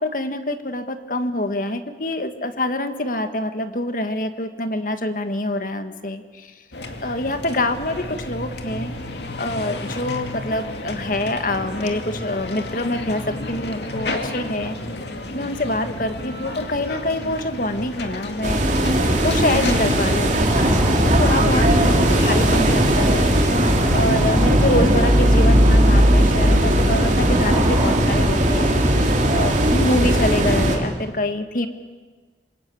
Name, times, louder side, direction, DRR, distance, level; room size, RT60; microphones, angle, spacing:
voice 1, 0.0-6.5 7.0-8.9 9.4-14.8 15.3-18.7 19.2-23.6 23.9-31.7, left 1 dB, 50° left, 8 dB, 1.7 m, -26 dB
sound 1, 6.7-23.9, left 2 dB, 70° left, 2.4 m, -32 dB
sound 2, 18.4-30.8, right 1 dB, 45° right, 3.1 m, -18 dB
sound 3, 20.4-30.6, equal, 15° right, 5.1 m, -24 dB
27.5 x 22.0 x 8.6 m, 1.4 s
head